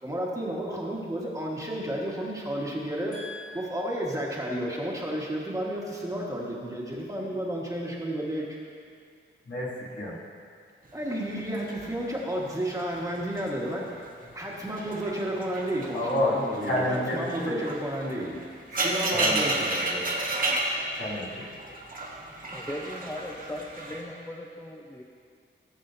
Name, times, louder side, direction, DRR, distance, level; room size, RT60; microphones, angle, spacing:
voice 1, 0.0-3.2 3.5-8.4 10.9-18.3 18.7-20.2, right 1 dB, 15° right, -4 dB, 1.4 m, -32 dB
voice 2, 3.1-3.8 9.4-10.1 15.9-16.3 16.6-17.7 19.1-19.6 20.9-21.5, left 1 dB, 65° left, -7 dB, 2.6 m, -30 dB
sound 1, 11.2-13.6 13.8-14.2 14.7-24.0, right 2 dB, 45° right, 1.4 m, -32 dB
voice 3, 22.5-25.0, left 1 dB, 10° left, -2 dB, 0.7 m, -38 dB
17.0 x 7.5 x 2.7 m, 2.2 s
wide cardioid pair, 130°, 21 cm